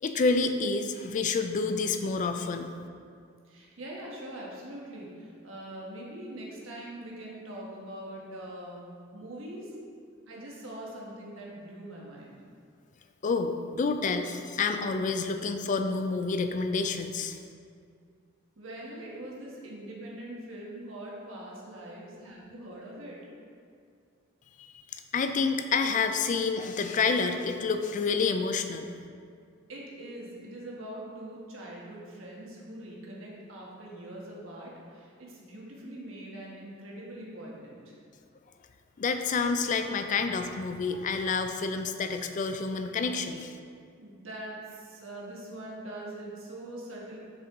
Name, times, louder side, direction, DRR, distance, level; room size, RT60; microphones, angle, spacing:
voice 1, 0.0-2.7 13.2-17.4 24.6-24.7 25.1-28.9 39.0-43.5, left 4 dB, 40° left, 8 dB, 0.4 m, -28 dB
voice 2, 3.4-9.7 10.3-12.4 18.6-23.2 29.7-38.0 44.0-47.2, right 1 dB, 85° right, -4 dB, 1.3 m, -43 dB
6.2 x 4.6 x 3.6 m, 2.3 s
head